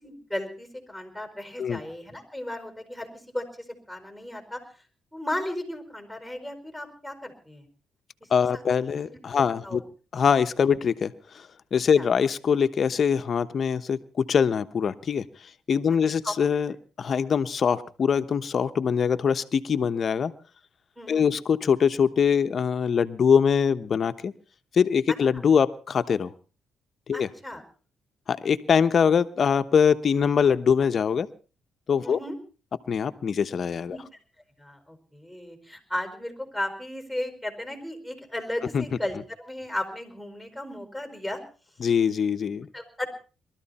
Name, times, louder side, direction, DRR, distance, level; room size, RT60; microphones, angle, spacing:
voice 1, 0.0-4.6 5.1-7.6 8.2-8.6 9.1-9.2 9.6-9.8 10.6-10.8 11.9-12.1 16.2-16.3 21.0-21.3 25.3-25.4 27.1-27.6 32.0-32.3 33.9-34.0 34.6-41.4 42.7-43.1, left 1 dB, 5° right, 6 dB, 5.0 m, -35 dB
voice 2, 8.3-9.8 10.1-11.1 11.7-15.2 15.7-20.3 21.1-24.3 24.7-26.3 27.1-27.3 28.3-31.3 31.9-32.2 32.9-34.0 38.7-38.8 41.8-42.7, left 7 dB, 50° left, 10 dB, 1.1 m, -23 dB
22.0 x 13.5 x 4.3 m, 0.37 s
cardioid pair, 90°, 0 cm